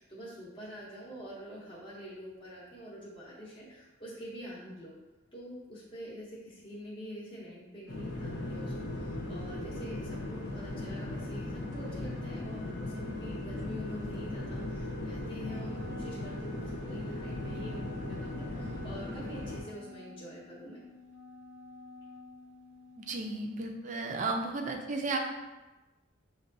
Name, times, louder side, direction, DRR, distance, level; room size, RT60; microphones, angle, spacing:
voice 1, 0.0-4.9 5.3-20.8, equal, 25° left, -8 dB, 0.7 m, -45 dB
sound 1, 7.9-19.6, left 1 dB, 55° left, 0.8 m, -38 dB
Wind instrument woodwind instrument, 15.4-23.5, left 3 dB, 80° left, 0.4 m, -51 dB
voice 2, 23.0-25.2, right 3 dB, 35° right, 3 dB, 0.4 m, -34 dB
6.5 x 2.2 x 2.6 m, 1.1 s
head